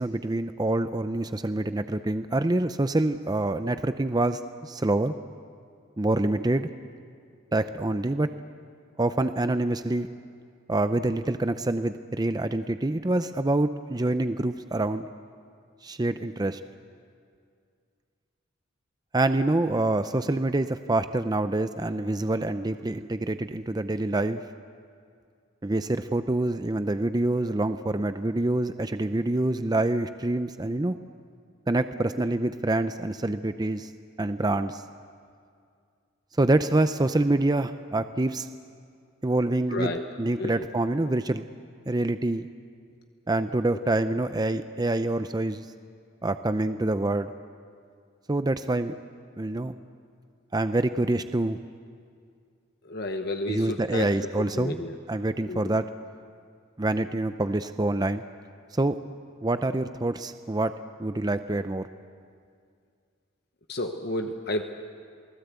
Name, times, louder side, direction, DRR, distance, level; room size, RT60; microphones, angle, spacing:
voice 1, 0.0-5.1 6.0-6.7 7.5-8.3 9.0-10.1 10.7-15.1 15.8-16.6 19.1-24.4 25.6-31.0 31.7-33.9 34.2-34.8 36.4-38.5 39.2-39.9 40.2-41.5 41.9-42.5 43.3-45.6 46.2-47.3 48.3-48.9 49.4-49.8 50.5-51.6 53.5-54.8 55.1-55.9 56.8-58.2 58.7-59.0 59.4-60.7 61.0-61.9, right 2 dB, 20° right, 10 dB, 0.5 m, -26 dB
voice 2, 39.7-40.1 40.4-40.7 43.7-43.8 52.8-55.0 55.5-55.7 63.7-64.6, left 2 dB, 55° left, 5 dB, 1.1 m, -32 dB
28.5 x 19.0 x 8.2 m, 2.2 s
head